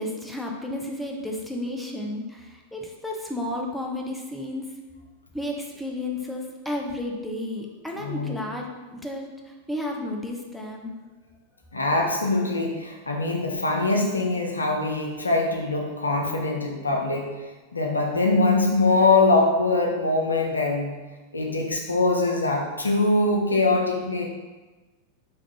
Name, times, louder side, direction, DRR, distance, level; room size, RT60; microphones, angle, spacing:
voice 1, 0.0-4.7 5.3-10.9, left 1 dB, ahead, -1 dB, 0.4 m, -32 dB
voice 2, 8.0-8.4 11.7-17.3 17.7-21.0 21.3-24.3, left 2 dB, 80° left, 1 dB, 0.4 m, -23 dB
3.4 x 2.3 x 3.1 m, 1.2 s
figure-of-eight pair, 90°, 0 cm